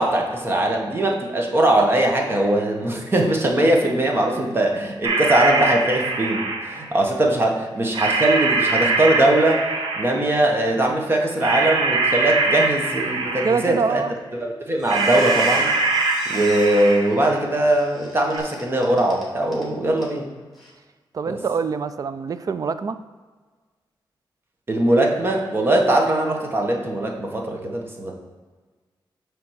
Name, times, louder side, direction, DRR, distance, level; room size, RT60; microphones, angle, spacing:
voice 1, 0.0-9.6 10.0-14.0 14.3-15.7 16.3-20.3 21.3-21.4 24.7-28.1, right 1 dB, 25° right, 1 dB, 1.1 m, -21 dB
sound 1, 5.0-6.9 7.9-10.4 11.4-13.8 14.9-17.3 18.3-18.4, right 3 dB, 75° right, 0.8 m, -23 dB
voice 2, 13.4-14.2 21.1-23.0, right 5 dB, 45° right, 12 dB, 0.3 m, -24 dB
Squeak, 14.2-14.4 14.7-19.7 20.0-20.1 20.5-20.7, left 1 dB, ahead, 1.8 m, -38 dB
7.3 x 3.5 x 6.3 m, 1.4 s
wide cardioid pair, 140°, 9 cm